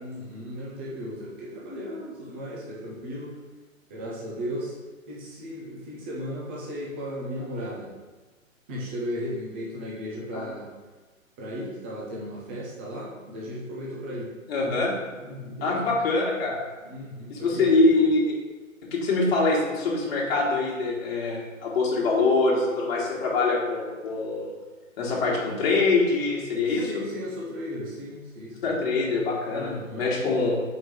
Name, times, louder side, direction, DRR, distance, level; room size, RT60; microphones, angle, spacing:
voice 1, 0.0-3.4 3.9-4.7 5.1-7.9 8.7-10.7 11.4-14.3 15.2-16.0 16.8-18.0 26.7-28.7 29.5-30.0, equal, 10° right, -5 dB, 0.4 m, -36 dB
voice 2, 14.5-14.9 15.6-16.6 17.3-18.4 18.9-24.5 25.0-27.0 28.6-30.6, left 3 dB, 45° left, -4 dB, 1.6 m, -24 dB
4.6 x 4.5 x 4.7 m, 1.3 s
figure-of-eight pair, 120°, 41 cm